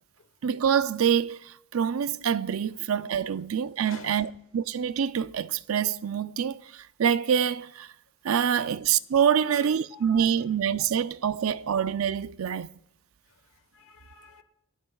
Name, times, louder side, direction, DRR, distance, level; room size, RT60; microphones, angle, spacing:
voice 1, 0.4-7.9 8.2-12.7, right 8 dB, 80° right, 0.5 m, -26 dB
voice 2, 3.9-4.2 9.4-10.3 13.7-14.4, left 4 dB, 65° left, 1.3 m, -48 dB
28.5 x 12.0 x 2.4 m
head